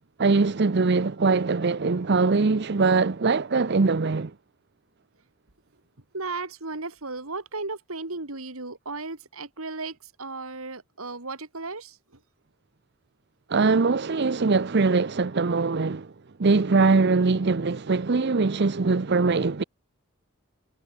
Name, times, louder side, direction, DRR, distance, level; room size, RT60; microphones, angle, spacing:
voice 1, 0.2-4.3 13.5-16.1 16.4-19.6, right 4 dB, 50° right, 0.6 m, -22 dB
voice 2, 6.1-12.0, right 3 dB, 75° right, 3.0 m, -35 dB
head